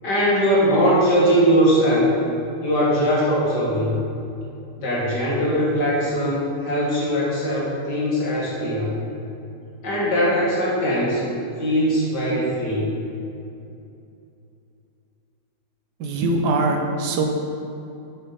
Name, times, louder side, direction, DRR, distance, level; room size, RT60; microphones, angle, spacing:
voice 1, 0.0-2.1 2.6-4.0 4.8-9.0 9.8-11.3 11.6-12.9, equal, 85° left, -6 dB, 2.5 m, -20 dB
voice 2, 16.0-17.2, right 2 dB, 85° right, 3 dB, 1.4 m, -22 dB
6.8 x 6.6 x 4.2 m, 2.7 s
omnidirectional pair, 1.8 m